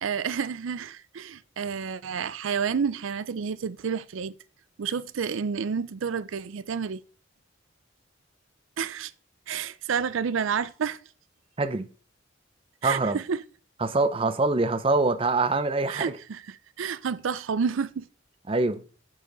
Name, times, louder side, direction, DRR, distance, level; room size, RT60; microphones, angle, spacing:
voice 1, 0.0-4.3 4.8-7.0 8.8-9.1 9.5-11.0 12.8-13.4 15.9-18.1, right 6 dB, 85° right, 0.5 m, -30 dB
voice 2, 11.6-11.9 12.8-13.2 13.8-16.1 18.5-18.8, right 3 dB, 30° right, 0.5 m, -24 dB
8.9 x 5.2 x 3.9 m
head